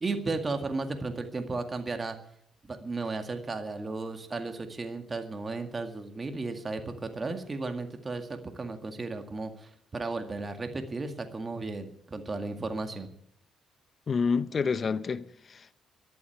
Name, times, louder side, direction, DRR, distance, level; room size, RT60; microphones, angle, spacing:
voice 1, 0.0-2.2 2.6-13.1, right 3 dB, 30° right, 2.0 m, -34 dB
voice 2, 14.1-15.7, left 5 dB, 45° left, 0.9 m, -29 dB
13.5 x 11.5 x 8.2 m
cardioid pair, 90°, 0 cm